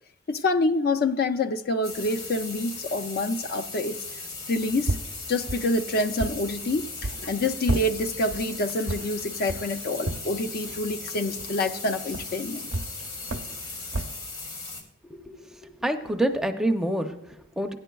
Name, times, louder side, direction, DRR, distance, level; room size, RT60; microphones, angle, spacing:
voice 1, 0.3-4.0 4.5-5.0 5.3-12.7, left 2 dB, 50° left, 8 dB, 0.4 m, -27 dB
sound 1, 1.8-14.8, left 3 dB, 90° left, 2.6 m, -38 dB
sound 2, 4.6-14.2, right 1 dB, 75° right, 0.7 m, -35 dB
voice 2, 15.0-17.7, right 1 dB, ahead, 5 dB, 0.5 m, -28 dB
16.5 x 10.0 x 2.3 m, 0.84 s
head